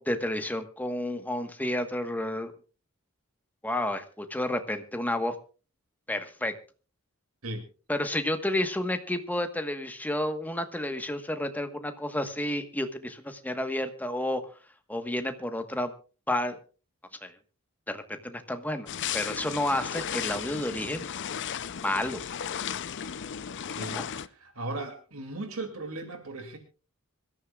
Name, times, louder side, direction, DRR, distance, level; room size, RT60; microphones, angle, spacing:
voice 1, 0.0-2.5 3.6-5.3 6.1-6.5 7.9-14.4 14.9-15.9 16.3-16.6 17.2-17.3 17.9-18.9 19.1-21.0 21.8-22.2 23.9-24.1, left 1 dB, 10° left, 7 dB, 1.3 m, -30 dB
sound 1, 18.9-24.3, left 8 dB, 55° left, 0.6 m, -35 dB
voice 2, 23.7-26.6, right 2 dB, 75° right, 6 dB, 2.6 m, -37 dB
25.5 x 13.5 x 2.4 m, 0.36 s
head